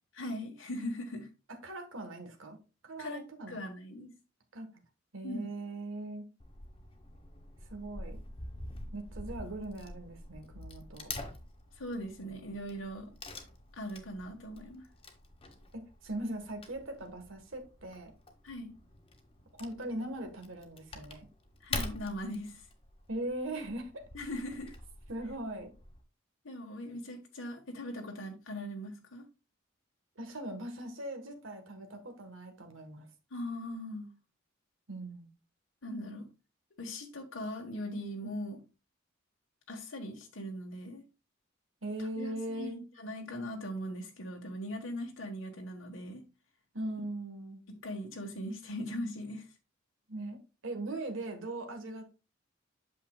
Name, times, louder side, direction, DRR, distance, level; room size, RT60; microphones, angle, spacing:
voice 1, 0.1-1.3 3.0-4.1 5.2-5.4 11.7-13.1 13.7-14.9 18.4-18.7 21.6-22.6 24.1-24.8 26.4-29.3 33.3-34.1 35.8-36.3 36.8-38.6 39.7-41.0 42.2-46.2 47.7-49.5, equal, 90° left, 1.4 m, -40 dB
voice 2, 1.6-2.6 2.8-3.6 4.5-4.8 5.1-6.3 7.7-8.2 8.9-11.1 15.7-18.1 19.5-21.3 23.1-24.3 25.1-25.7 30.2-33.1 34.9-35.3 41.8-42.8 46.7-47.6 50.1-52.1, right 1 dB, 85° right, 1.5 m, -40 dB
Wood / Tearing, 6.4-26.0, left 2 dB, 30° left, 1.2 m, -46 dB
8.4 x 6.6 x 2.3 m
head